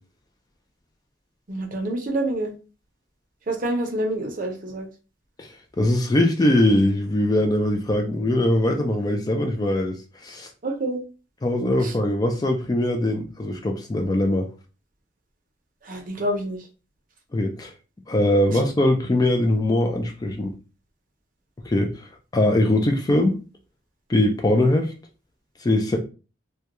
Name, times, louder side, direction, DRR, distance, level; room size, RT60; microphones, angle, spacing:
voice 1, 1.5-2.5 3.5-4.9 10.6-11.0 11.8-11.9 15.8-16.6, right 1 dB, 45° right, 3 dB, 0.6 m, -27 dB
voice 2, 5.8-10.5 11.4-14.5 17.3-17.7 18.1-20.5 21.7-22.1 22.3-23.3 24.1-24.9 25.6-26.0, left 1 dB, 20° left, 3 dB, 0.3 m, -21 dB
2.2 x 2.2 x 2.8 m, 0.33 s
head